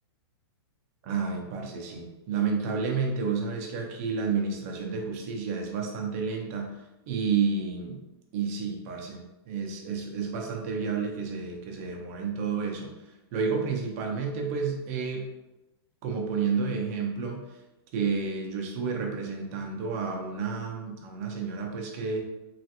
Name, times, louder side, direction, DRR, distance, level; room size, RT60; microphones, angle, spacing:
voice 1, 1.0-6.7 7.1-8.0 8.3-12.9 13.3-15.3 16.0-17.5 17.9-22.2, right 5 dB, 35° right, 1 dB, 0.5 m, -30 dB
3.2 x 2.4 x 2.8 m, 1.0 s
hypercardioid pair, 160°, 14 cm